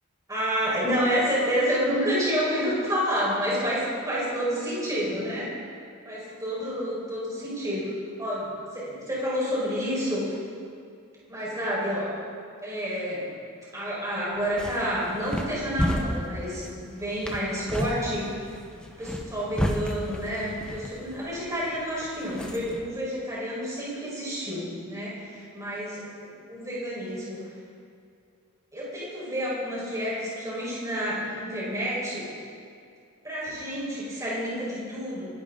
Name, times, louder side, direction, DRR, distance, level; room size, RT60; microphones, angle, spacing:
voice 1, 0.3-5.5 6.0-10.3 11.3-12.1 12.6-13.3 13.7-18.3 19.0-27.5 28.7-32.3 33.2-35.2, equal, 15° right, -7 dB, 5.1 m, -29 dB
sound 1, 14.3-22.8, equal, 5° left, 1.2 m, -33 dB
25.5 x 13.0 x 4.0 m, 2.4 s
head